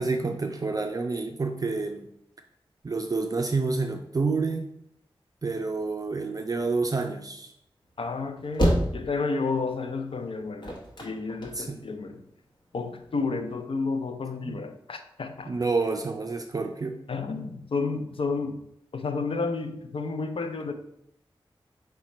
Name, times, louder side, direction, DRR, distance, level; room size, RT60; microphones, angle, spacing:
voice 1, 0.0-2.1 2.8-4.7 5.4-7.5 11.5-11.8 14.4-14.6 15.5-17.0, right 3 dB, 40° right, 4 dB, 0.4 m, -28 dB
sound 1, 7.9-12.1 12.6-13.6, equal, 55° left, 1.0 m, -28 dB
voice 2, 8.0-10.8 11.0-12.2 12.7-15.5 17.1-18.6 18.9-20.7, left 4 dB, 75° left, 7 dB, 0.5 m, -31 dB
4.8 x 2.2 x 4.2 m, 0.74 s
wide cardioid pair, 70°, 9 cm